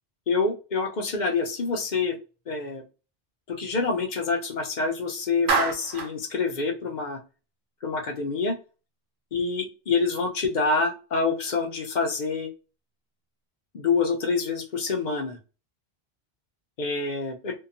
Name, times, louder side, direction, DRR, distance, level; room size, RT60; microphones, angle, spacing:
voice 1, 0.3-2.1 2.5-2.8 3.5-7.2 7.8-8.5 9.3-12.5 13.7-15.4 16.8-17.5, left 4 dB, 50° left, 3 dB, 0.7 m, -26 dB
Clapping, 5.5-6.2, right 5 dB, 80° right, 0.9 m, -25 dB
2.8 x 2.3 x 2.4 m, 0.33 s
omnidirectional pair, 1.1 m